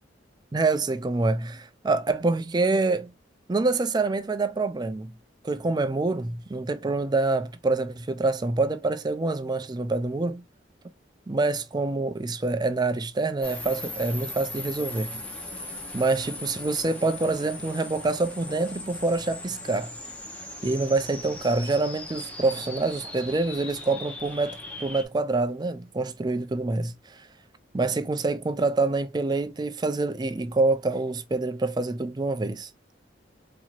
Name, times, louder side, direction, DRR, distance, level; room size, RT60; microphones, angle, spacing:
voice 1, 0.5-3.1 3.5-5.1 5.4-10.4 11.3-15.2 15.9-19.9 20.6-26.9 27.7-32.7, right 3 dB, 25° right, 0.4 m, -26 dB
sound 1, 13.4-25.0, left 1 dB, 10° left, 0.8 m, -39 dB
4.4 x 2.9 x 2.4 m
head